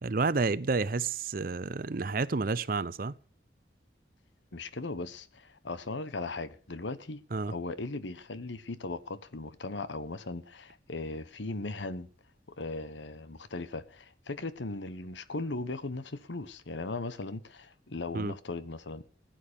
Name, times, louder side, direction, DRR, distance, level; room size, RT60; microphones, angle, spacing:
voice 1, 0.0-3.2 7.3-7.5 18.1-18.3, right 4 dB, 50° right, 0.6 m, -30 dB
voice 2, 4.5-7.2 7.5-12.1 12.6-19.0, left 2 dB, 85° left, 1.1 m, -38 dB
16.0 x 9.3 x 6.8 m
head